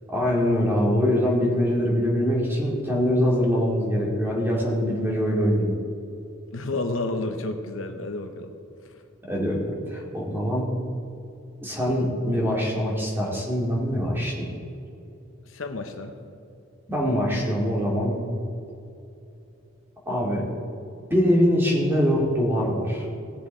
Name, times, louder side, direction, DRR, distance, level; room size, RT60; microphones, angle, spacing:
voice 1, 0.1-5.8 9.2-10.7 11.6-14.5 16.9-18.1 20.1-20.5 21.1-23.1, equal, 10° right, -3 dB, 2.3 m, -23 dB
voice 2, 6.5-8.5 8.8-8.9 15.5-16.2, left 2 dB, 65° left, 6 dB, 0.9 m, -31 dB
18.5 x 6.8 x 4.4 m, 2.7 s
head